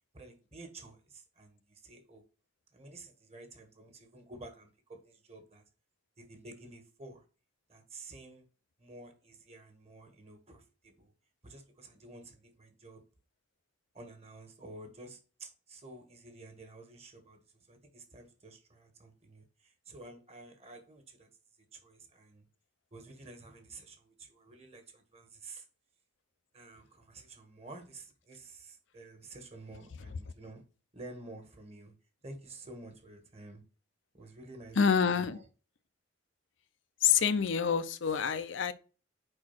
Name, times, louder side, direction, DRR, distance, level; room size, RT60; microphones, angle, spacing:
voice 1, 0.1-2.2 2.7-5.6 6.2-7.2 7.7-8.5 8.8-11.1 11.4-13.0 13.9-17.4 17.7-21.3 21.7-22.5 22.9-25.6 26.5-30.6 30.9-31.9 32.2-33.6 34.1-35.4, right 2 dB, 35° right, 1.5 m, -51 dB
voice 2, 34.8-35.4 37.0-38.7, left 7 dB, 75° left, 0.6 m, -27 dB
4.8 x 4.4 x 5.8 m
head